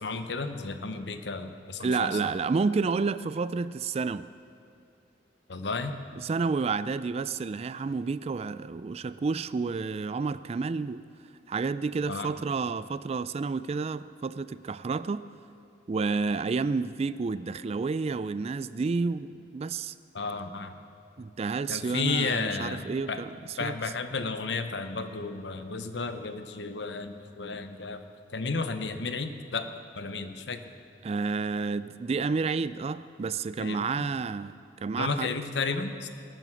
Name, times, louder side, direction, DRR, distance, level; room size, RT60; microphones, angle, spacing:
voice 1, 0.0-2.3 5.5-6.0 12.1-12.3 20.1-20.8 21.7-23.2 23.6-28.0 28.3-29.7 29.9-30.6 33.6-34.1 35.0-36.1, left 4 dB, 70° left, 9 dB, 0.9 m, -33 dB
voice 2, 1.8-4.3 6.2-11.1 11.5-15.2 15.9-19.9 21.2-23.7 31.0-35.3, right 4 dB, 35° right, 15 dB, 0.3 m, -30 dB
20.0 x 9.2 x 6.2 m, 2.7 s
head